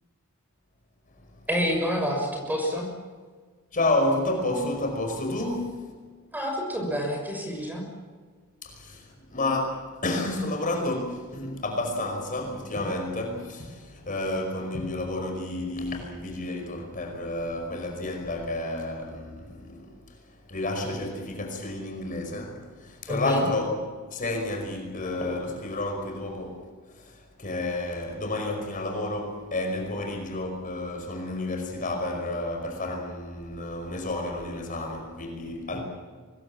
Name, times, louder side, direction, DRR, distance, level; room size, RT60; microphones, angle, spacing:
voice 1, 1.5-2.9 6.3-7.8 23.1-23.5, equal, 10° right, 2 dB, 6.4 m, -28 dB
voice 2, 3.7-5.9 8.6-19.9 20.5-23.7 24.1-26.6 26.9-35.8, left 2 dB, 40° left, 3 dB, 5.2 m, -30 dB
25.0 x 21.5 x 7.4 m, 1.5 s
head